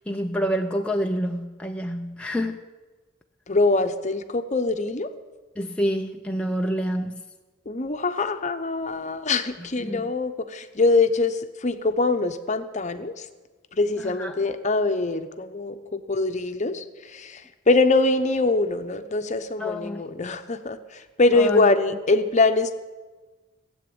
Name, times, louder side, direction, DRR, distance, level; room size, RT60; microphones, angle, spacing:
voice 1, 0.0-2.6 5.6-7.2 9.8-10.0 14.0-14.4 19.6-20.0 21.4-21.6, equal, 5° left, 2 dB, 0.5 m, -27 dB
voice 2, 3.5-5.1 7.7-13.3 13.7-22.7, left 3 dB, 35° left, 8 dB, 0.8 m, -23 dB
16.5 x 8.0 x 8.7 m, 1.3 s
head